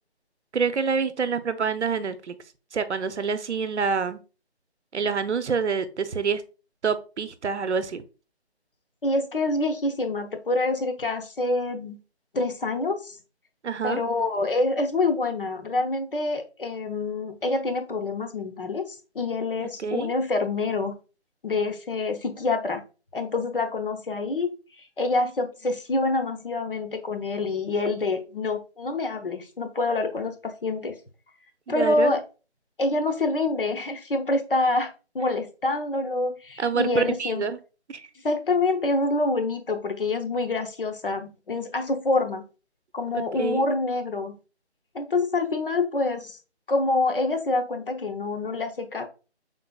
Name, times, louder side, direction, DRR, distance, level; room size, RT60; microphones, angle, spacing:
voice 1, 0.5-2.4 2.7-4.2 4.9-6.4 6.8-8.0 13.6-14.0 19.6-20.1 31.7-32.1 36.6-37.6 37.9-38.1 43.1-43.6, right 5 dB, 85° right, 12 dB, 0.7 m, -27 dB
voice 2, 9.0-12.0 12.3-13.2 13.8-21.0 21.4-22.8 23.1-30.9 31.7-32.2 32.8-37.4 38.2-42.4 42.9-44.4 44.9-46.4 46.7-49.0, left 2 dB, 55° left, 7 dB, 0.8 m, -26 dB
5.2 x 4.0 x 2.3 m, 0.33 s
figure-of-eight pair, 180°, 33 cm